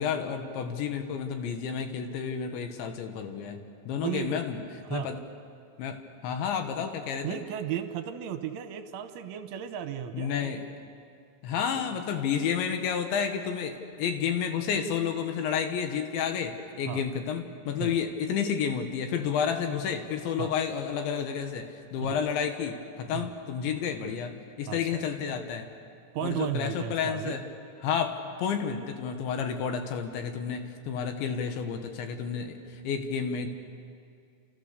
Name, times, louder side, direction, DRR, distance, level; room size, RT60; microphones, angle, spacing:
voice 1, 0.0-4.6 4.9-5.2 5.8-6.0 6.2-7.4 10.1-10.6 11.4-25.7 26.2-27.4 27.8-33.5, left 7 dB, 70° left, 6 dB, 3.5 m, -31 dB
voice 2, 4.0-4.4 4.8-5.1 7.2-10.5 16.9-17.0 17.8-18.0 20.4-20.5 22.1-22.2 23.1-23.3 24.7-25.0 26.1-27.4, right 10 dB, 80° right, 8 dB, 3.3 m, -34 dB
29.5 x 28.5 x 6.8 m, 2.3 s
omnidirectional pair, 5.8 m